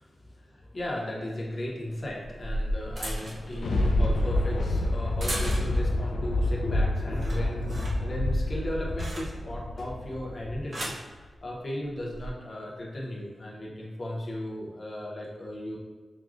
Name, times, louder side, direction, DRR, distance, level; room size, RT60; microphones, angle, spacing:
voice 1, 0.0-11.0 11.4-15.8, left 1 dB, 40° left, -3 dB, 0.8 m, -36 dB
sound 1, 0.8-0.9 2.0-6.0 6.4-6.8 7.1-9.6 10.4-11.1 12.0-12.3, right 1 dB, 45° right, 0.7 m, -36 dB
Thunder, 3.2-10.8 11.2-11.3, left 1 dB, 70° left, 0.4 m, -28 dB
6.2 x 2.3 x 2.5 m, 1.4 s
wide cardioid pair, 160°, 0 cm